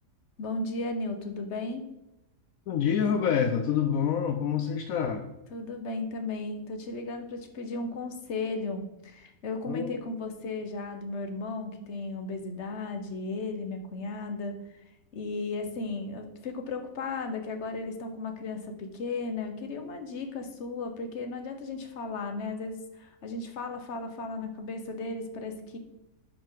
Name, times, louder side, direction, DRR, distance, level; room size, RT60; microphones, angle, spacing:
voice 1, 0.4-1.8 5.5-14.6 15.1-25.8, left 3 dB, 55° left, 6 dB, 1.3 m, -35 dB
voice 2, 2.7-5.3 9.7-9.9, left 7 dB, 75° left, 6 dB, 1.1 m, -27 dB
11.0 x 5.0 x 3.9 m, 0.92 s
omnidirectional pair, 1.5 m